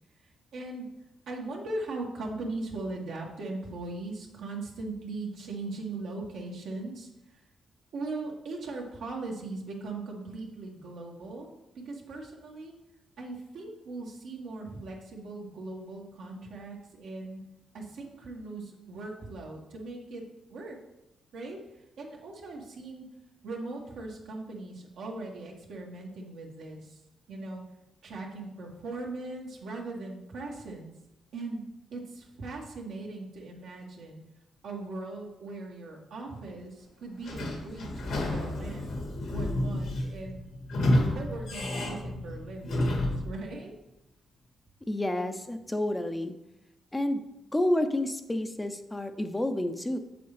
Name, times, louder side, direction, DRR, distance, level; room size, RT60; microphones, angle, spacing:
voice 1, 0.5-0.9 1.3-7.1 7.9-12.7 13.2-17.4 17.7-20.3 20.5-20.8 21.3-21.6 22.0-23.1 23.4-27.0 27.3-27.6 28.0-30.9 31.3-31.6 31.9-34.2 34.6-39.0 39.3-40.4 40.9-43.7, right 2 dB, 80° right, -1 dB, 1.7 m, -39 dB
Sliding door / Squeak, 37.2-43.3, left 1 dB, 80° left, 2.1 m, -30 dB
voice 2, 44.9-46.3 46.9-47.2 47.5-50.0, left 1 dB, 15° left, 7 dB, 0.7 m, -29 dB
7.3 x 6.9 x 3.3 m, 0.90 s
cardioid pair, 65°, 0 cm